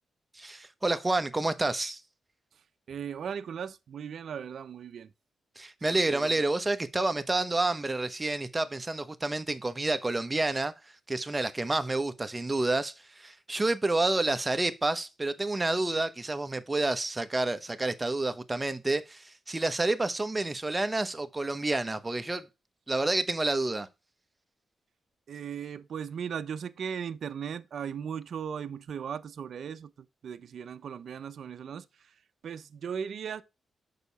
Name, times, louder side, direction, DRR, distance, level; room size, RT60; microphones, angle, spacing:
voice 1, 0.3-2.0 5.6-10.7 11.1-22.5 22.9-23.9, right 2 dB, 20° right, 0.9 m, -29 dB
voice 2, 2.9-5.1 5.9-6.3 25.3-32.1 32.4-33.4, right 7 dB, 70° right, 0.6 m, -37 dB
6.7 x 5.6 x 4.0 m
cardioid pair, 95°, 0 cm